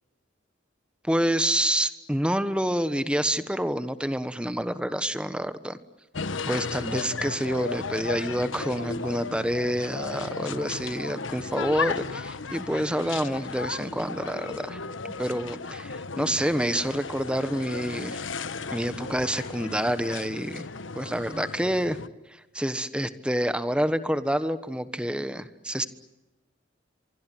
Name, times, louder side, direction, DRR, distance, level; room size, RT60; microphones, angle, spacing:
voice 1, 1.1-5.8 6.5-14.8 15.2-18.2 18.7-20.7 21.0-22.0 22.3-25.9, equal, 5° right, 12 dB, 1.2 m, -28 dB
sound 1, 6.1-22.1, left 4 dB, 80° left, 1.1 m, -35 dB
25.5 x 24.5 x 9.2 m, 1.1 s
head